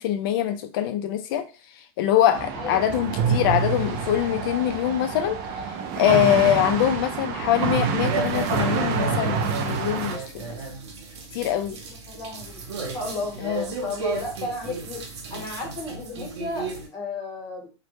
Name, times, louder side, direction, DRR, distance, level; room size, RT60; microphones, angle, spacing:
voice 1, 0.0-1.5 2.0-5.4 6.0-10.6 11.3-11.8 13.4-13.6, left 11 dB, 55° left, 0.4 m, -23 dB
sound 1, 2.3-10.2, right 5 dB, 40° right, 0.4 m, -27 dB
voice 2, 2.5-2.9 6.4-6.7 11.7-12.6 12.9-13.4 13.8-15.0 15.3-17.7, left 2 dB, 25° left, 0.9 m, -33 dB
sound 2, 8.0-16.9, right 4 dB, 80° right, 0.7 m, -34 dB
2.1 x 2.1 x 3.0 m
supercardioid pair, 155°, 14 cm